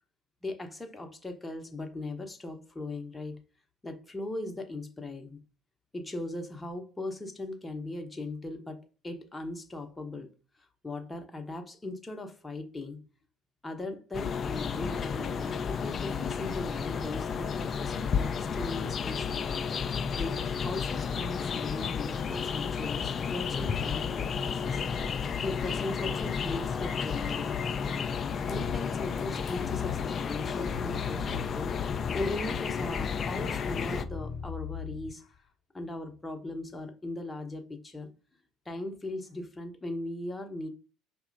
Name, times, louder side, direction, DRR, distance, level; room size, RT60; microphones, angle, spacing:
voice 1, 0.4-3.4 3.8-5.4 5.9-10.3 10.8-13.0 13.6-19.5 20.2-24.8 25.4-27.6 28.5-35.3 35.7-38.1 38.7-40.7, left 2 dB, 15° left, 0.7 m, -39 dB
sound 1, 14.1-34.0, left 6 dB, 40° left, 0.4 m, -32 dB
sound 2, 28.4-35.3, left 8 dB, 60° left, 0.8 m, -41 dB
4.9 x 2.8 x 2.5 m
hypercardioid pair, 60°, 0 cm